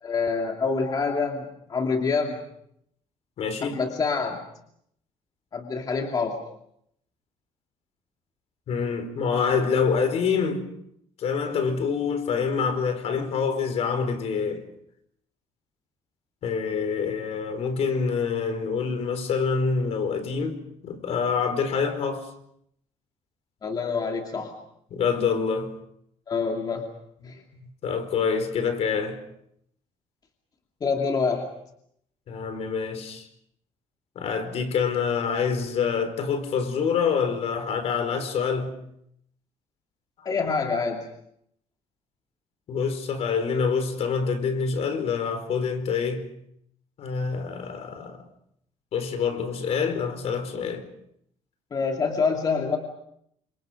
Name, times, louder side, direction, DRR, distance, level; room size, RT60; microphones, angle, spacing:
voice 1, 0.0-2.4 3.6-4.4 5.5-6.4 23.6-24.5 26.3-26.8 27.2-27.4 30.8-31.5 40.2-41.0 51.7-52.8, left 4 dB, 35° left, 2.7 m, -26 dB
voice 2, 3.4-3.8 8.7-10.6 11.2-14.7 16.4-22.3 24.9-25.7 27.2-27.3 27.8-29.2 32.3-33.2 34.1-38.7 42.7-46.3 47.0-48.2 48.9-50.8, left 5 dB, 60° left, 4.8 m, -26 dB
30.0 x 27.0 x 5.2 m
cardioid pair, 135°, 12 cm